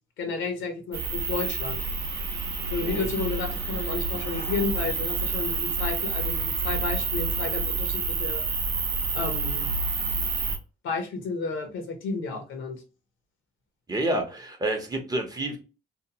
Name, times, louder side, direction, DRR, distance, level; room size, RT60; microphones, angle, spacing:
voice 1, 0.2-1.8 2.7-8.4 9.1-9.7 10.8-12.8, left 4 dB, 80° left, 5 dB, 0.8 m, -32 dB
sound 1, 0.9-10.6, right 4 dB, 60° right, 0.7 m, -29 dB
voice 2, 13.9-15.6, right 1 dB, 20° right, 3 dB, 0.7 m, -29 dB
2.8 x 2.0 x 2.8 m, 0.33 s
cardioid pair, 90°, 20 cm